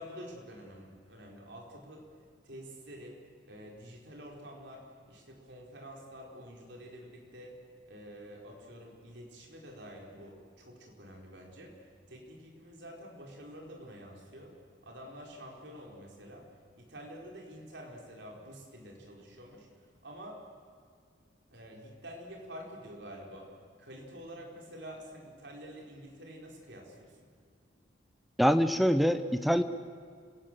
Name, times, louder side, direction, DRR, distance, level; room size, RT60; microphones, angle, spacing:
voice 1, 0.0-2.1 2.5-3.2 3.4-7.5 7.9-11.7 12.1-14.5 14.8-16.4 16.7-19.7 20.0-20.4 21.5-23.5 23.8-27.1, equal, 60° right, 0 dB, 4.6 m, -48 dB
voice 2, 28.4-29.6, equal, ahead, 10 dB, 0.8 m, -24 dB
29.0 x 17.5 x 7.7 m, 2.1 s
head